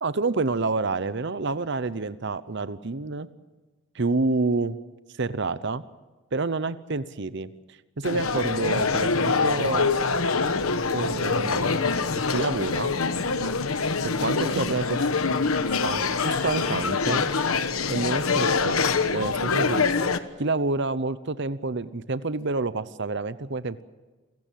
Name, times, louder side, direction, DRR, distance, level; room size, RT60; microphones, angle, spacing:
voice 1, 0.0-3.3 3.9-4.8 5.2-5.8 6.3-7.5 8.0-9.9 10.9-11.8 12.3-12.9 14.0-15.0 15.8-17.3 17.9-18.8 19.1-19.9 20.4-23.8, right 3 dB, 55° right, 15 dB, 0.8 m, -28 dB
sound 1, 8.0-20.2, left 4 dB, 80° left, 1.2 m, -25 dB
28.0 x 17.0 x 7.6 m, 1.2 s
head